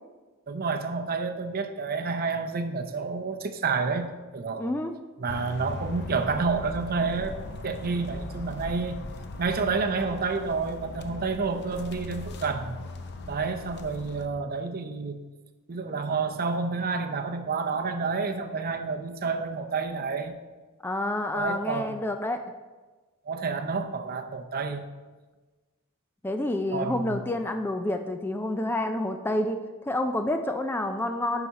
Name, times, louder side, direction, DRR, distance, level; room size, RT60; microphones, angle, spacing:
voice 1, 0.5-4.7 5.2-9.0 9.4-12.8 13.3-15.2 15.7-20.3 21.3-22.0 23.3-24.8 26.7-27.2, right 4 dB, 45° right, 6 dB, 0.6 m, -29 dB
voice 2, 4.6-4.9 20.8-22.4 26.2-31.5, left 1 dB, 10° left, 6 dB, 0.3 m, -28 dB
sound 1, 5.3-14.3, left 2 dB, 50° left, 0.6 m, -39 dB
10.0 x 4.9 x 4.1 m, 1.3 s
head